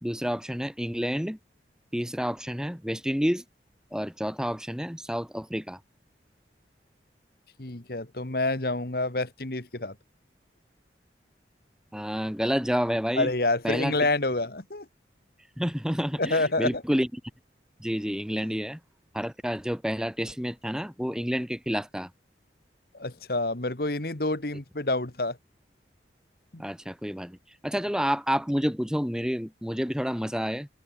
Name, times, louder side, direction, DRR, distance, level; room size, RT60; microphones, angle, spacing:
voice 1, 0.0-1.4 1.9-3.4 3.9-5.8 11.9-13.3 13.6-14.0 15.6-17.1 17.8-18.8 19.1-22.1 26.6-27.4 27.6-30.7, equal, 5° right, 3.0 m, -29 dB
voice 2, 7.6-10.0 13.2-14.9 16.2-16.8 22.9-25.4 26.5-26.6, left 2 dB, 55° left, 1.8 m, -28 dB
head